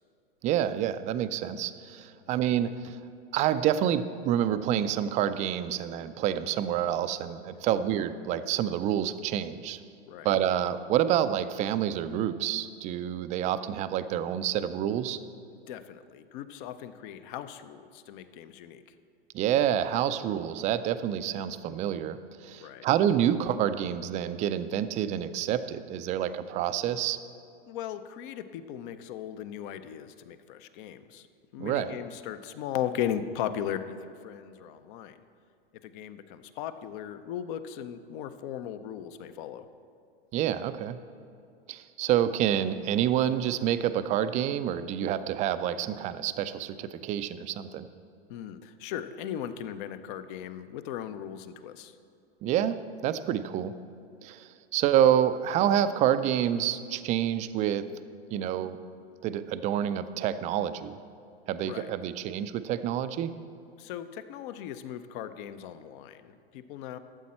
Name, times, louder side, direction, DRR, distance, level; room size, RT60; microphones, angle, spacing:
voice 1, 0.4-3.0 3.3-9.8 10.2-15.2 19.3-27.2 31.6-31.9 40.3-41.0 41.7-47.9 52.4-53.8 54.2-57.9 58.3-58.8 59.2-61.0 61.5-63.3, right 10 dB, 25° right, 12 dB, 0.3 m, -28 dB
voice 2, 7.5-7.9 10.1-10.3 15.5-18.9 22.6-22.9 27.7-31.3 31.5-35.2 35.8-39.7 48.3-52.0 61.6-62.0 63.8-67.0, left 10 dB, 50° left, 12 dB, 0.7 m, -37 dB
13.0 x 7.6 x 4.3 m, 2.5 s
hypercardioid pair, 110°, 32 cm